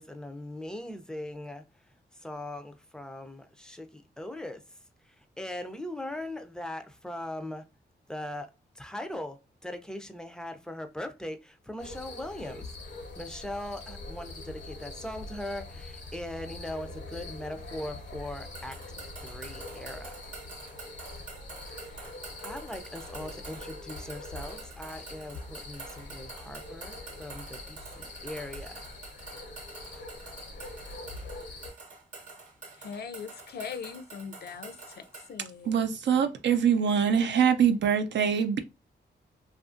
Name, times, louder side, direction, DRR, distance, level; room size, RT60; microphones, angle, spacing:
voice 1, 0.0-1.9 2.1-4.8 5.0-7.7 8.1-18.8 19.2-20.2 21.8-22.0 22.4-28.9, left 1 dB, 5° left, 0.4 m, -40 dB
sound 1, 11.8-31.7, left 2 dB, 80° left, 0.9 m, -43 dB
sound 2, 18.5-35.3, right 4 dB, 45° right, 0.8 m, -47 dB
voice 2, 32.8-35.9, left 6 dB, 60° left, 0.5 m, -41 dB
voice 3, 35.7-38.6, right 7 dB, 75° right, 0.5 m, -24 dB
2.7 x 2.4 x 2.5 m
cardioid pair, 100°, 18 cm